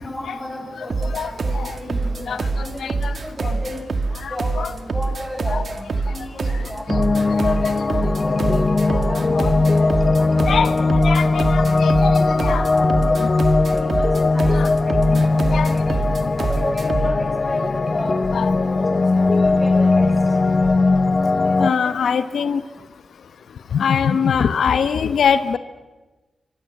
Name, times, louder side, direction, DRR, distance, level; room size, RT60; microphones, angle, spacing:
voice 1, 0.0-3.9 4.3-7.1 8.1-11.4 12.0-15.6 16.3-18.2 18.6-18.9 19.2-20.4 21.6-22.5, left 1 dB, 5° left, 3 dB, 5.4 m, -33 dB
voice 2, 0.8-1.8 2.3-3.2 4.2-4.7 5.5-5.6 7.3-7.9 8.9-9.0 9.3-9.5 10.5-10.7 11.0-12.1 12.4-12.6 13.0-13.3 14.5-14.7 15.0-15.7 16.2-16.3 18.3-18.5 21.6-22.6 23.7-25.6, left 7 dB, 85° left, 12 dB, 0.9 m, -23 dB
sound 1, 0.9-17.2, right 3 dB, 55° right, 2.0 m, -25 dB
sound 2, 6.9-21.7, left 3 dB, 40° left, 0.7 m, -19 dB
26.5 x 23.5 x 7.8 m, 1.2 s
wide cardioid pair, 120°, 0 cm